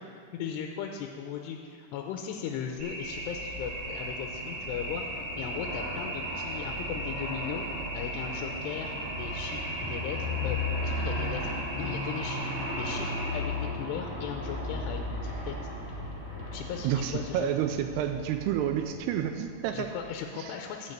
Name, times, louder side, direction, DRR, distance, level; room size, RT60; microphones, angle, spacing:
voice 1, 0.3-5.1 5.4-7.7 7.9-15.5 16.5-17.5 19.7-20.9, left 8 dB, 90° left, 3 dB, 2.7 m, -37 dB
Aircraft, 2.8-20.0, left 2 dB, 20° right, 2.0 m, -36 dB
sound 1, 2.8-13.4, right 1 dB, 45° right, 1.5 m, -38 dB
sound 2, 9.1-11.1 11.7-15.2 15.5-18.3 18.9-19.1, left 1 dB, 60° left, 2.2 m, -52 dB
voice 2, 16.8-19.9 20.4-20.5, right 10 dB, 85° right, 7 dB, 2.5 m, -29 dB
10.5 x 5.8 x 7.9 m, 2.3 s
omnidirectional pair, 4.8 m